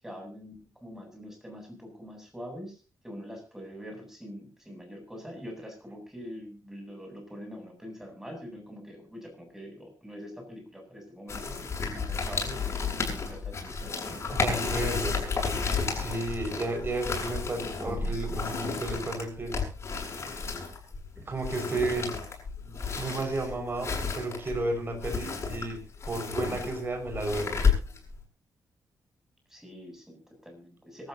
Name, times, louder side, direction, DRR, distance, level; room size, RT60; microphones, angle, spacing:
voice 1, 0.0-14.2 14.7-15.2 29.5-31.1, equal, 5° right, 2 dB, 7.9 m, -44 dB
sound 1, 11.3-28.2, left 5 dB, 40° left, 7.6 m, -32 dB
voice 2, 14.3-15.2 15.9-19.5 21.2-22.1 22.6-25.8 26.1-27.6, right 2 dB, 30° right, 5 dB, 5.4 m, -32 dB
26.0 x 13.5 x 2.8 m, 0.34 s
wide cardioid pair, 130°, 7 cm